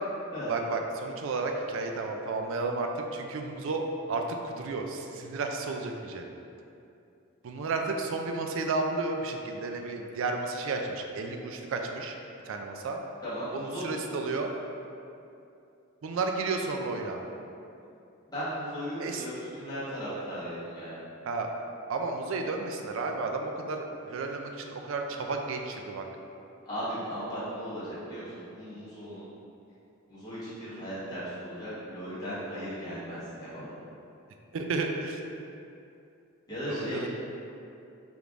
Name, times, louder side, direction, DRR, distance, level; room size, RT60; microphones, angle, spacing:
voice 1, 0.5-6.3 7.4-12.2 12.5-13.0 13.5-14.5 16.0-17.2 19.0-19.3 21.2-21.5 21.9-26.0 34.5-35.2 36.7-37.1, right 3 dB, 60° right, 3 dB, 0.4 m, -32 dB
voice 2, 13.2-13.9 18.3-21.0 26.6-29.2 30.1-33.7 36.5-37.1, equal, 20° left, -12 dB, 1.4 m, -36 dB
4.9 x 3.3 x 2.5 m, 2.7 s
head